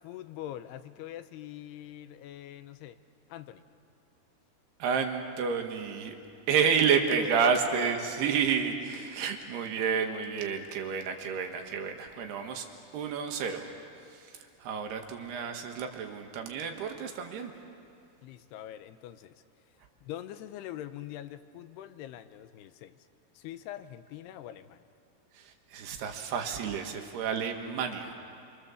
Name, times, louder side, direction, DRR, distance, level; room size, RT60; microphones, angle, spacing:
voice 1, 0.0-3.0 3.3-3.6 7.2-8.4 18.2-19.4 20.0-23.0 23.3-24.8, left 12 dB, 85° left, 10 dB, 2.8 m, -43 dB
voice 2, 4.8-6.2 6.5-12.7 12.9-13.7 14.1-14.3 14.6-17.5 25.3-28.2, right 6 dB, 75° right, 4 dB, 3.6 m, -30 dB
28.0 x 25.5 x 7.2 m, 2.5 s
omnidirectional pair, 4.8 m